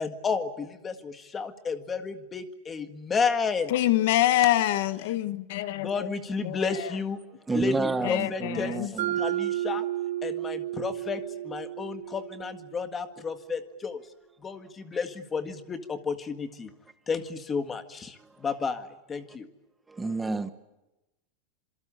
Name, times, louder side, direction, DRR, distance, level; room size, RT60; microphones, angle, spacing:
voice 1, 0.0-3.7 5.7-7.2 7.5-8.7 9.2-9.8 10.2-14.0 14.4-16.7 17.1-19.5, left 5 dB, 15° left, 1.7 m, -32 dB
voice 2, 3.7-5.9 6.4-6.9 8.0-8.9, left 14 dB, 60° left, 1.2 m, -25 dB
voice 3, 7.5-9.2 14.9-15.0 18.2-18.5 19.9-20.5, right 3 dB, 10° right, 1.0 m, -30 dB
Mallet percussion, 9.0-13.0, right 13 dB, 85° right, 4.7 m, -32 dB
27.0 x 24.5 x 8.9 m
supercardioid pair, 175°, 0 cm